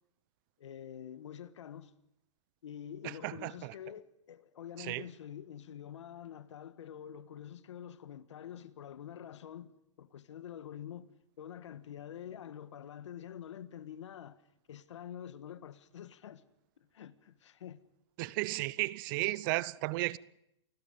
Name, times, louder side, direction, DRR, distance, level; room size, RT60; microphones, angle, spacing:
voice 1, 0.6-1.9 2.6-11.1 11.4-14.4 14.7-16.4 16.8-17.8, left 9 dB, 75° left, 1.4 m, -47 dB
voice 2, 3.0-3.7 4.8-5.0 18.2-20.2, right 20 dB, 45° right, 0.7 m, -34 dB
29.0 x 20.0 x 5.2 m
hypercardioid pair, 130°, 15 cm